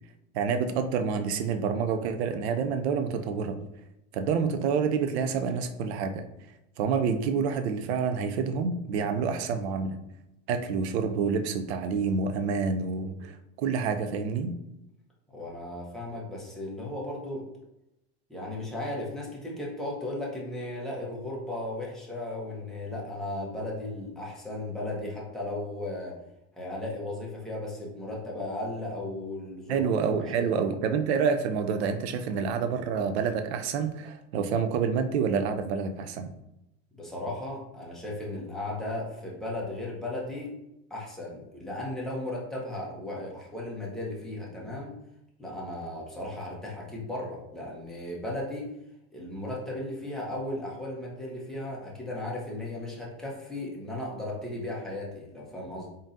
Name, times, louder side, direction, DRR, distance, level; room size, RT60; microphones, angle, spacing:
voice 1, 0.3-3.6 4.1-6.2 6.8-10.0 10.5-14.5 29.7-36.3, right 6 dB, 90° right, 8 dB, 0.6 m, -28 dB
voice 2, 15.3-17.4 18.3-26.1 26.5-29.9 30.3-30.7 37.0-40.5 40.9-44.9 45.4-48.7 49.1-55.9, left 1 dB, ahead, -5 dB, 1.2 m, -36 dB
3.8 x 3.7 x 2.6 m, 0.86 s
supercardioid pair, 125°, 31 cm